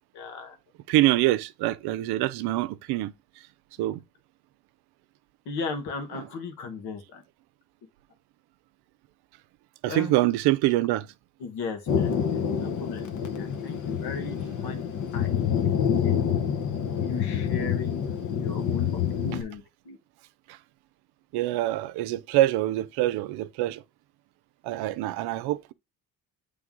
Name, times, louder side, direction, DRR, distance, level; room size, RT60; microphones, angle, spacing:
voice 1, 0.1-0.5 5.4-7.2 9.9-10.1 11.4-13.1 13.4-14.4 14.6-14.8 15.1-15.3 15.9-16.2 17.0-18.0 18.4-18.9 19.2-20.0, left 4 dB, 80° left, 1.6 m, -36 dB
voice 2, 0.9-3.1 3.8-4.0 6.1-6.3 9.8-11.1 21.3-23.8 24.6-25.7, right 16 dB, 85° right, 0.6 m, -25 dB
Thunder, 11.9-19.4, left 8 dB, 50° left, 1.0 m, -27 dB
7.5 x 3.4 x 3.7 m
cardioid pair, 100°, 38 cm